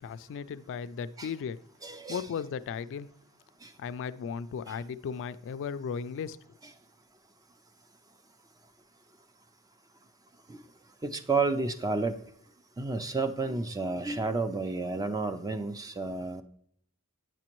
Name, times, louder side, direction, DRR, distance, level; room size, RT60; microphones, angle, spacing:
voice 1, 0.0-1.6 2.1-3.1 3.8-6.4, left 6 dB, 55° left, 0.3 m, -36 dB
voice 2, 1.8-2.2 3.6-3.7 11.0-12.2 12.8-16.4, right 3 dB, 15° right, 0.4 m, -31 dB
9.0 x 6.1 x 3.0 m
head